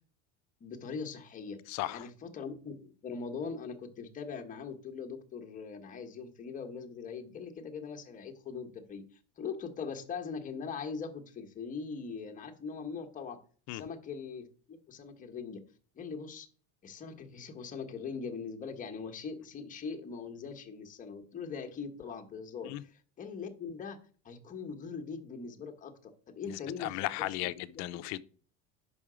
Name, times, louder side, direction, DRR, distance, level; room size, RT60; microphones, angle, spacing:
voice 1, 0.6-9.0 9.4-13.4 13.7-15.6 15.9-16.5 16.8-24.0 24.2-25.9 26.3-26.9 27.2-27.5, left 5 dB, 25° left, 1.0 m, -41 dB
voice 2, 1.7-2.1 13.7-13.8 22.6-22.8 26.5-28.2, left 17 dB, 55° left, 0.5 m, -36 dB
7.2 x 5.6 x 4.9 m
cardioid pair, 145°, 34 cm